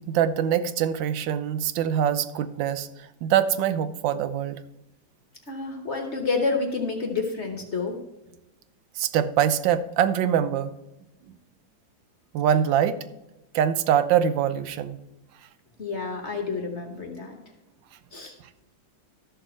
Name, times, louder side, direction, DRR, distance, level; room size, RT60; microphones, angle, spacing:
voice 1, 0.0-2.9 3.2-4.6 9.0-10.7 12.3-13.0 13.5-15.0, right 9 dB, 80° right, 12 dB, 1.4 m, -23 dB
voice 2, 5.5-8.0 15.8-17.4 18.1-18.3, left 4 dB, 40° left, 3 dB, 1.3 m, -29 dB
13.0 x 6.8 x 4.4 m, 0.92 s
omnidirectional pair, 2.0 m